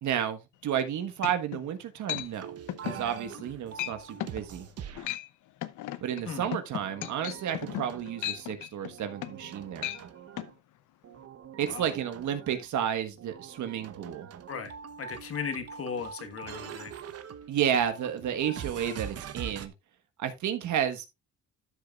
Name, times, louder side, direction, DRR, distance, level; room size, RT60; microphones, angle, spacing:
voice 1, 0.0-2.5 2.8-4.7 6.0-9.9 11.6-14.3 17.5-19.7 20.2-21.1, right 9 dB, 75° right, 1.4 m, -31 dB
sound 1, 0.8-0.9 1.2-1.6 2.1-2.3 2.7-3.0 3.4-3.5 3.8-4.4 4.9-5.3 5.6-9.5 9.8-10.0 10.4-10.5, left 14 dB, 80° left, 0.7 m, -35 dB
sound 2, 2.1-5.1 6.8-8.5 8.9-10.6 11.0-12.7 13.2-19.7, right 8 dB, 55° right, 1.0 m, -44 dB
voice 2, 15.0-16.9 18.5-18.6, left 6 dB, 50° left, 1.6 m, -36 dB
12.5 x 6.9 x 2.4 m
cardioid pair, 90°, 30 cm